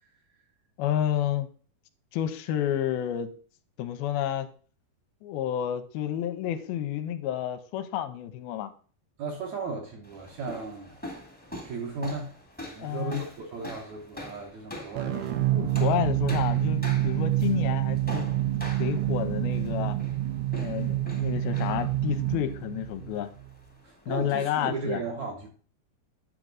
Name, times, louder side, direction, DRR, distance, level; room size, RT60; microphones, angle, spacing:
voice 1, 0.8-1.5 2.1-3.3 3.8-4.5 5.2-8.7 12.8-13.2 15.1-15.2 15.5-18.3 18.8-20.0 20.5-23.3 24.1-25.0, left 11 dB, 85° left, 9 dB, 2.5 m, -30 dB
voice 2, 9.2-11.0 11.5-12.3 12.6-15.5 23.8-25.5, right 4 dB, 65° right, 1 dB, 1.9 m, -36 dB
sound 1, 10.0-24.3, left 1 dB, 5° left, 0.9 m, -44 dB
sound 2, 15.0-23.6, right 14 dB, 80° right, 2.9 m, -27 dB
9.3 x 6.1 x 3.9 m, 0.41 s
omnidirectional pair, 4.5 m